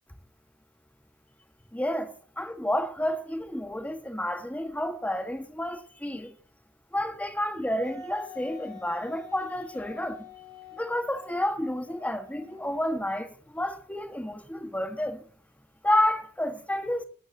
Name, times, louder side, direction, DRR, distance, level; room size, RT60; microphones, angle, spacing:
voice 1, 1.7-6.3 6.9-10.2 10.7-15.2 15.8-17.0, left 1 dB, 5° left, 1.6 m, -30 dB
Wind instrument woodwind instrument, 7.8-13.4, left 5 dB, 20° right, 6.3 m, -47 dB
19.5 x 12.0 x 2.9 m
head